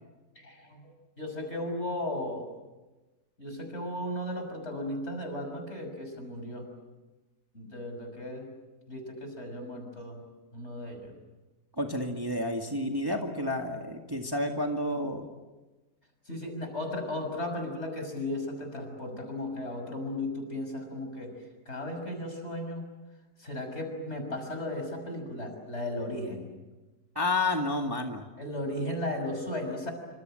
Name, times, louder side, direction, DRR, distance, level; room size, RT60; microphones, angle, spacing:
voice 1, 0.4-0.8 1.2-2.5 3.4-6.7 7.5-8.5 8.9-10.2 10.5-11.1 16.3-21.3 21.7-22.8 23.4-26.5 28.4-29.9, left 1 dB, 45° left, 5 dB, 6.5 m, -35 dB
voice 2, 11.8-15.3 27.2-28.2, left 2 dB, 15° right, 2 dB, 1.9 m, -30 dB
27.5 x 26.0 x 7.8 m, 1.2 s
omnidirectional pair, 1.6 m